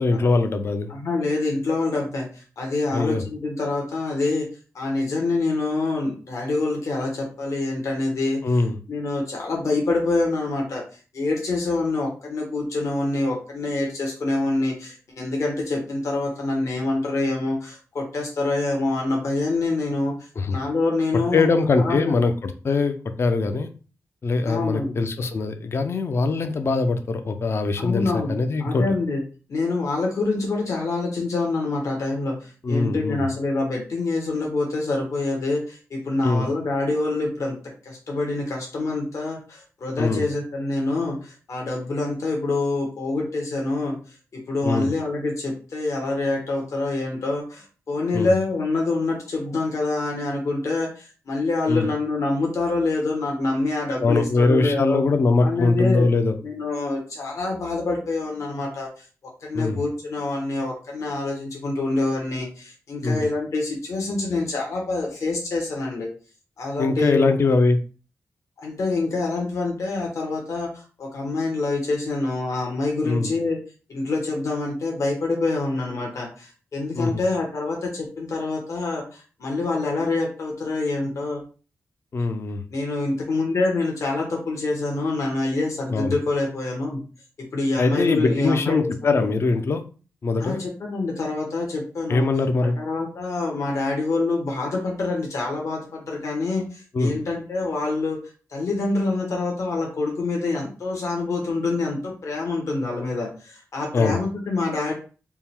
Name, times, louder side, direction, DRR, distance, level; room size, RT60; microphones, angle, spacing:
voice 1, 0.0-0.9 2.9-3.2 8.4-8.8 20.4-20.6 21.3-23.7 24.2-28.8 32.6-33.3 36.2-36.5 40.0-40.3 44.6-44.9 48.1-48.3 51.7-51.9 54.0-56.4 59.5-59.8 63.0-63.2 66.8-67.8 73.0-73.3 76.9-77.2 82.1-82.6 85.9-86.2 87.8-89.8 90.2-90.6 92.1-92.8 96.9-97.1 103.9-104.2, left 3 dB, 50° left, 8 dB, 0.4 m, -22 dB
voice 2, 0.9-4.5 4.7-8.6 8.9-10.8 11.1-20.1 20.5-21.4 21.7-22.2 24.5-25.0 27.8-28.3 28.6-29.2 29.5-37.6 37.8-44.0 44.3-55.0 55.4-56.1 56.4-59.0 59.4-66.1 66.6-67.3 68.6-73.6 73.9-81.4 82.7-87.0 87.5-89.2 90.4-92.3 92.7-98.2 98.5-104.9, left 3 dB, 70° left, -1 dB, 1.1 m, -26 dB
3.6 x 2.1 x 4.4 m, 0.36 s
wide cardioid pair, 95°, 6 cm